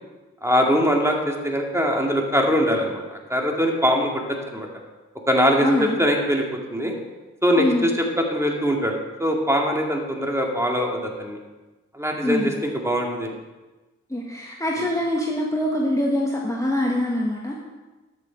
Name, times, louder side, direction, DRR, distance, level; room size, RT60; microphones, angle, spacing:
voice 1, 0.4-3.0 3.3-4.7 5.3-6.4 6.7-6.9 7.4-7.9 8.3-11.4 11.9-13.3, equal, 10° right, 0 dB, 2.2 m, -22 dB
voice 2, 5.6-5.9 7.5-7.8 12.2-12.5 14.1-17.5, left 1 dB, 10° left, -3 dB, 1.6 m, -24 dB
12.5 x 6.6 x 4.6 m, 1.2 s
cardioid pair, 40°, 30 cm